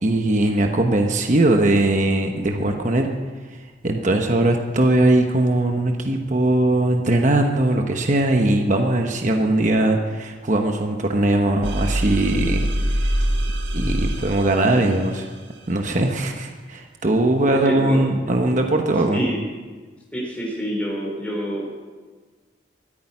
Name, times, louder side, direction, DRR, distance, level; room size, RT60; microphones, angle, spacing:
voice 1, 0.0-3.1 3.5-13.1 13.7-15.3 15.7-19.2, right 1 dB, 40° right, 3 dB, 1.1 m, -20 dB
sound 1, 11.6-15.2, right 1 dB, 65° right, 1.5 m, -24 dB
voice 2, 17.4-18.0 19.1-19.4 20.1-21.8, equal, 5° left, -3 dB, 3.6 m, -27 dB
13.5 x 10.5 x 9.7 m, 1.4 s
head